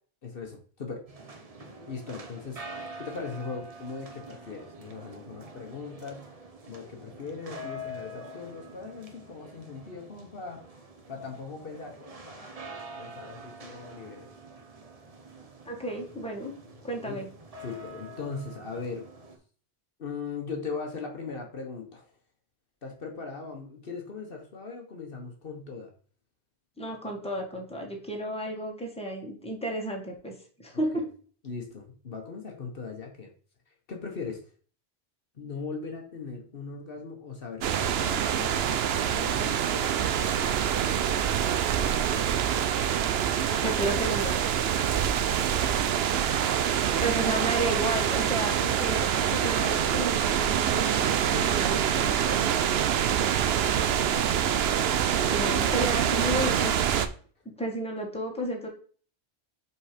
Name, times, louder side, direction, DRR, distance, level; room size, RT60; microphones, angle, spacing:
voice 1, 0.2-1.0 1.9-6.2 6.7-10.7 11.1-12.6 13.0-14.3 17.0-17.2 17.6-19.1 20.0-22.1 22.8-25.9 30.7-31.0 31.4-33.3 33.9-34.4 35.3-40.9 46.4-46.8 53.4-55.5, left 4 dB, 60° left, 2 dB, 1.3 m, -40 dB
sound 1, 1.1-19.4, right 1 dB, 35° right, 1.0 m, -45 dB
voice 2, 15.6-16.5 16.8-17.3 26.8-30.3 30.6-31.1 43.6-44.4 47.0-52.4 55.1-56.8 57.6-58.7, right 1 dB, 5° left, 0 dB, 1.5 m, -32 dB
sound 2, 37.6-57.1, right 9 dB, 70° right, 0.8 m, -25 dB
5.5 x 4.6 x 5.0 m, 0.44 s
omnidirectional pair, 1.1 m